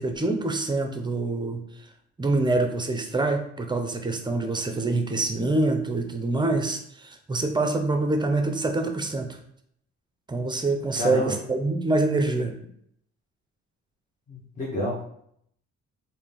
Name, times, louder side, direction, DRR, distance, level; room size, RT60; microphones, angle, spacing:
voice 1, 0.0-1.6 2.2-9.4 10.3-12.5, right 2 dB, 15° right, 5 dB, 0.5 m, -25 dB
voice 2, 11.0-11.3 14.3-15.0, left 1 dB, 25° left, -5 dB, 0.9 m, -29 dB
3.7 x 2.6 x 3.4 m, 0.70 s
cardioid pair, 90°, 30 cm